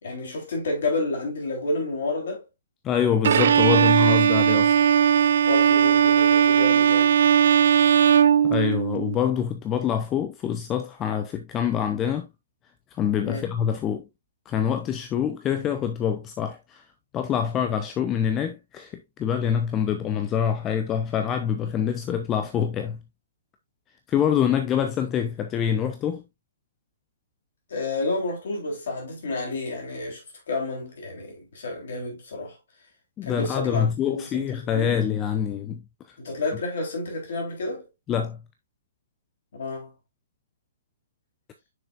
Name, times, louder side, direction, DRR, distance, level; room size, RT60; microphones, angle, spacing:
voice 1, 0.0-2.4 5.5-7.2 13.2-13.5 27.7-32.6 33.2-34.5 34.7-35.0 36.2-37.9 39.5-39.9, left 2 dB, 55° left, 3.5 m, -30 dB
voice 2, 2.8-4.7 8.4-12.3 12.9-14.1 14.5-16.8 17.1-23.0 24.1-26.2 33.2-35.8 36.1-36.2 38.1-38.4, left 8 dB, 20° left, 0.6 m, -25 dB
Bowed string instrument, 3.2-9.2, right 8 dB, 55° right, 0.5 m, -18 dB
6.8 x 6.3 x 2.5 m
figure-of-eight pair, 120°, 0 cm